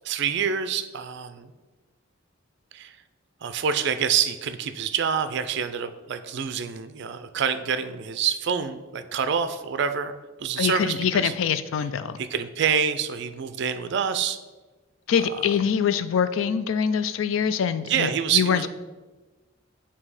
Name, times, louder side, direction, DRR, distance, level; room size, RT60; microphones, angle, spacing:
voice 1, 0.0-1.5 2.7-3.0 3.4-10.1 10.4-11.3 12.2-14.4 17.9-18.7, right 7 dB, 60° right, 11 dB, 0.4 m, -26 dB
voice 2, 10.6-12.2 15.1-18.7, left 7 dB, 80° left, 13 dB, 0.4 m, -24 dB
7.4 x 2.8 x 4.8 m, 1.2 s
head